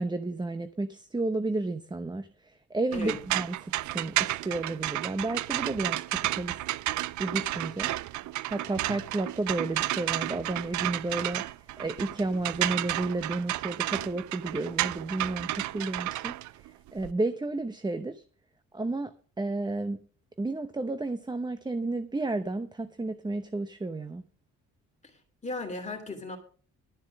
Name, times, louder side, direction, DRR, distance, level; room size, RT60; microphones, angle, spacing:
voice 1, 0.0-6.6 7.2-7.9 8.5-11.4 11.8-18.2 18.7-20.0 20.4-24.2, right 2 dB, 15° right, 10 dB, 0.8 m, -32 dB
sound 1, 2.9-17.1, right 16 dB, 70° right, 0.5 m, -32 dB
voice 2, 25.0-26.4, left 2 dB, 25° left, 3 dB, 2.8 m, -37 dB
12.5 x 7.4 x 6.2 m, 0.41 s
cardioid pair, 90°, 30 cm